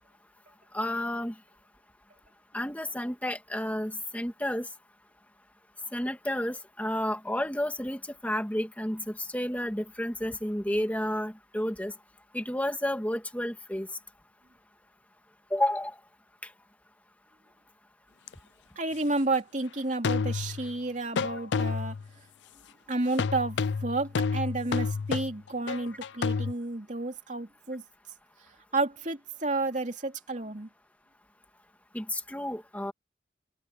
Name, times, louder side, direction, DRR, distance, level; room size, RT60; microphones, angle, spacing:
voice 1, 0.7-1.3 2.5-4.7 5.9-11.9 12.3-13.9 15.5-15.9 31.9-32.9, left 1 dB, 10° left, 2.0 m, -31 dB
sound 1, 18.3-18.4 20.0-20.8 21.2-22.1 23.2-26.5, left 5 dB, 75° left, 0.4 m, -30 dB
voice 2, 18.8-21.9 22.9-27.8 28.7-30.7, right 2 dB, 40° right, 3.0 m, -31 dB
open air
head